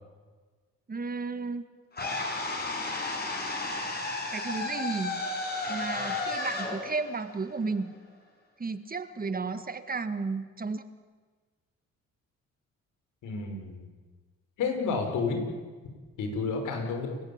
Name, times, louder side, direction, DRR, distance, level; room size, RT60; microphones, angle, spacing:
voice 1, 0.9-1.6 4.3-5.2 5.7-7.9 8.6-10.8, right 4 dB, 30° right, 10 dB, 1.7 m, -33 dB
sound 1, 1.9-8.1, left 2 dB, 30° left, 7.7 m, -33 dB
voice 2, 13.2-13.8 14.6-15.4 16.2-17.1, left 4 dB, 80° left, 4 dB, 5.6 m, -30 dB
29.5 x 15.5 x 8.8 m, 1.4 s
cardioid pair, 90°, 30 cm